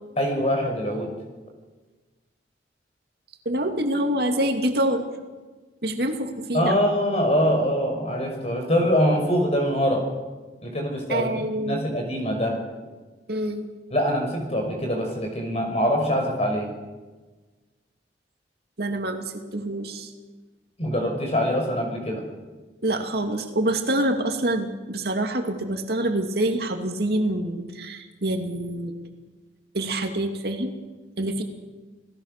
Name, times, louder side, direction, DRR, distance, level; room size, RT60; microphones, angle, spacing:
voice 1, 0.2-1.1 6.5-10.0 10.6-12.6 13.9-16.7 20.8-22.2, equal, 35° left, 3 dB, 5.7 m, -24 dB
voice 2, 3.4-5.0 5.8-6.7 11.1-11.8 13.3-13.7 18.8-20.1 22.8-28.9 29.7-30.7 31.2-31.4, right 1 dB, 60° right, 4 dB, 2.6 m, -26 dB
28.5 x 18.0 x 6.8 m, 1.3 s
head